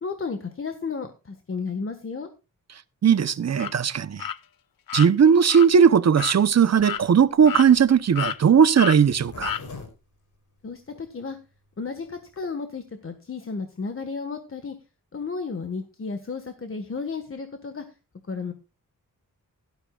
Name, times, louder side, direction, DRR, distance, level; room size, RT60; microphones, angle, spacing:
voice 1, 0.0-2.3 10.6-11.4 11.8-14.7 15.1-17.8 18.3-18.5, left 4 dB, 40° left, 1.5 m, -33 dB
voice 2, 3.0-4.3 4.9-9.6, right 7 dB, 50° right, 0.7 m, -18 dB
sound 1, 3.6-3.7 4.2-4.4 4.9-5.1 5.5-5.7 6.2-6.4 6.8-7.0 7.5-7.9 8.2-8.4 8.8-9.0 9.4-9.6, left 9 dB, 80° left, 0.7 m, -30 dB
Zipper (clothing), 6.8-11.1 11.5-11.6 11.8-11.9 12.1-12.5, left 3 dB, 65° left, 4.1 m, -44 dB
17.5 x 12.5 x 2.4 m
wide cardioid pair, 170°, 33 cm